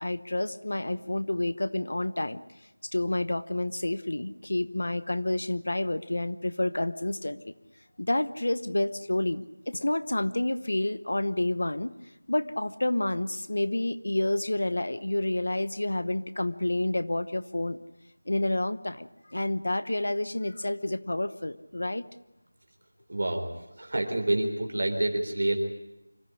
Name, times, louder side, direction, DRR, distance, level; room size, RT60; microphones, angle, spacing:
voice 1, 0.0-2.4 2.8-7.5 8.0-11.9 12.3-17.8 18.3-22.1, left 1 dB, 55° left, 14 dB, 0.9 m, -29 dB
voice 2, 23.1-23.5 23.8-25.6, right 1 dB, 40° right, 4 dB, 3.7 m, -27 dB
26.0 x 14.0 x 10.0 m, 0.96 s
figure-of-eight pair, 180°, 0 cm